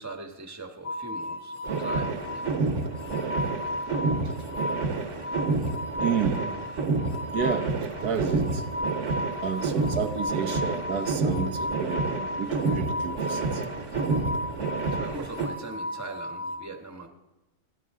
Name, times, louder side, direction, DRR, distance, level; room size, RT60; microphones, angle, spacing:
voice 1, 0.0-2.5 4.2-4.3 4.9-5.0 14.9-17.1, right 3 dB, 10° right, 4 dB, 1.3 m, -41 dB
sound 1, 0.8-16.6, left 1 dB, 55° left, 1.8 m, -35 dB
sound 2, 1.6-15.5, right 4 dB, 50° right, 1.6 m, -29 dB
voice 2, 6.0-6.5 7.3-8.7 9.4-14.6, right 6 dB, 80° right, 5 dB, 1.6 m, -31 dB
28.5 x 11.0 x 3.7 m, 1.0 s
omnidirectional pair, 1.6 m